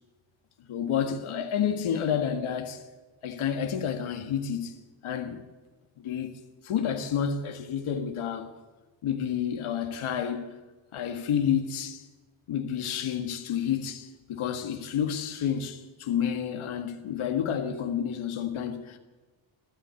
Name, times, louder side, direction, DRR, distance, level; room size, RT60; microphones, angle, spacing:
voice 1, 0.7-2.9 3.2-4.8 5.0-5.4 6.0-6.3 6.6-8.5 9.0-10.6 10.9-12.1 12.5-19.0, left 8 dB, 85° left, 1.9 m, -30 dB
14.0 x 14.0 x 7.2 m
wide cardioid pair, 170°, 48 cm